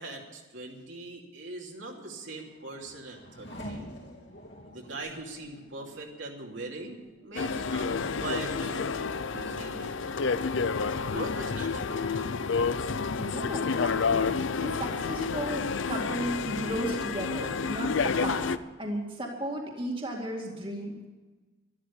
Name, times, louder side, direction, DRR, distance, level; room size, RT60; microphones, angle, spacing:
voice 1, 0.0-3.9 4.6-8.9 9.3-10.2 11.1-12.0, right 2 dB, 70° right, -1 dB, 2.8 m, -41 dB
Race car auto racing / Accelerating revving vroom, 2.1-15.3 15.7-16.4, equal, 55° left, 3.4 m, -50 dB
sound 1, 7.4-18.6, left 5 dB, 70° left, 0.6 m, -29 dB
voice 2, 13.2-18.5 18.8-21.1, right 1 dB, 25° right, -1 dB, 2.3 m, -35 dB
13.0 x 12.5 x 8.3 m, 1.3 s
head